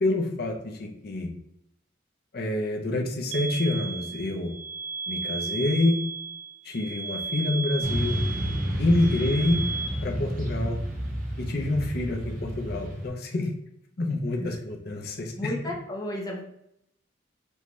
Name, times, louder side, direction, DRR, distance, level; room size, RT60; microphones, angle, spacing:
voice 1, 0.0-1.3 2.3-4.5 5.1-6.0 6.6-8.2 8.8-9.6 10.0-10.8 11.4-13.5 14.0-15.5, left 2 dB, 50° left, 2 dB, 0.6 m, -27 dB
sound 1, 3.3-9.9, right 4 dB, 60° right, 0.6 m, -34 dB
Motorcycle / Traffic noise roadway noise, 7.8-13.1, equal, 45° right, 1.1 m, -30 dB
voice 2, 15.4-16.4, left 1 dB, 20° left, -1 dB, 0.8 m, -34 dB
5.3 x 2.8 x 3.1 m, 0.77 s
head